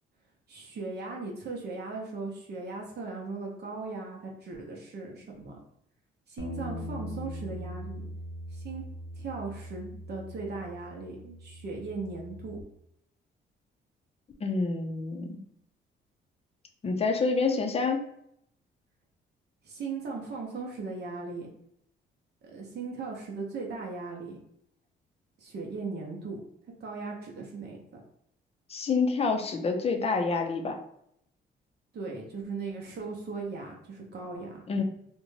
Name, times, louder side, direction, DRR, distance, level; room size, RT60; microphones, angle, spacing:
voice 1, 0.5-5.6 6.3-8.1 8.5-8.8 9.1-12.6 19.6-21.5 22.4-24.4 25.4-26.4 26.8-28.0 31.9-34.7, right 3 dB, 55° right, 0 dB, 0.7 m, -38 dB
Bass guitar, 6.4-12.6, equal, 80° left, 0.7 m, -41 dB
voice 2, 14.4-15.3 16.8-18.0 28.7-30.8 34.7-34.8, left 4 dB, 30° left, 4 dB, 0.5 m, -27 dB
2.5 x 2.1 x 3.1 m, 0.74 s
cardioid pair, 90°, 20 cm